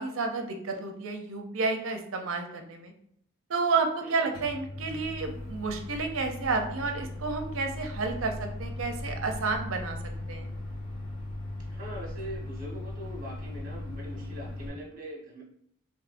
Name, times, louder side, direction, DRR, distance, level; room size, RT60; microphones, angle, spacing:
voice 1, 0.0-2.9 3.5-10.0 10.3-10.5, right 4 dB, 70° right, 5 dB, 0.6 m, -31 dB
Microwave oven, 4.3-14.7, left 1 dB, 85° left, 1.2 m, -38 dB
voice 2, 11.7-15.4, equal, 45° right, -2 dB, 1.2 m, -42 dB
3.5 x 3.1 x 2.5 m, 0.68 s
head